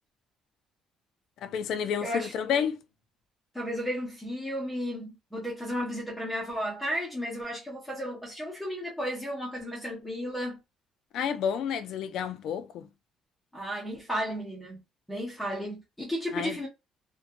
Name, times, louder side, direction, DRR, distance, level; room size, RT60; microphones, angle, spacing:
voice 1, 1.4-2.8 11.1-12.9 16.3-16.6, left 7 dB, 55° left, 0.4 m, -30 dB
voice 2, 2.0-2.3 3.5-10.6 13.5-14.8 15.1-16.7, equal, 5° left, 0.6 m, -33 dB
2.5 x 2.2 x 2.5 m
cardioid pair, 180°, 0 cm